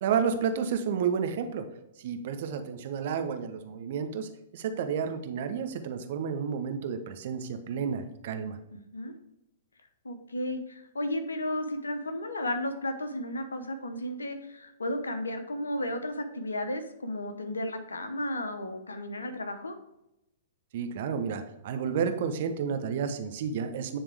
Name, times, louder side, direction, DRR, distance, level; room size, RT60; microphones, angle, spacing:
voice 1, 0.0-1.6 2.0-8.6 20.7-24.0, right 6 dB, 55° right, 8 dB, 0.8 m, -31 dB
voice 2, 8.7-9.1 10.0-19.7, left 1 dB, 80° left, 8 dB, 0.9 m, -34 dB
9.9 x 3.5 x 3.4 m, 0.87 s
figure-of-eight pair, 115°, 0 cm